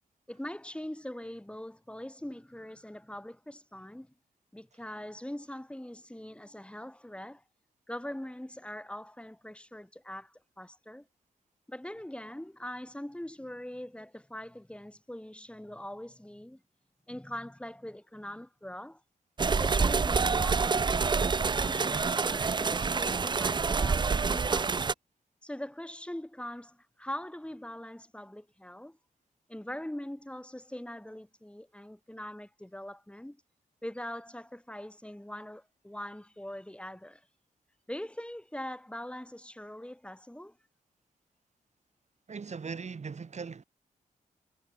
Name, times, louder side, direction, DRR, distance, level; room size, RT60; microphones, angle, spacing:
voice 1, 0.3-4.1 4.5-7.4 7.9-11.0 11.7-16.6 17.1-19.0 19.4-24.8 25.4-29.0 29.5-33.4 33.8-37.2 37.9-40.5, left 1 dB, 5° left, 1.7 m, -42 dB
sound 1, 19.4-24.9, right 5 dB, 30° right, 0.4 m, -27 dB
voice 2, 42.3-43.6, right 5 dB, 50° right, 1.5 m, -39 dB
supercardioid pair, 45°, 15 cm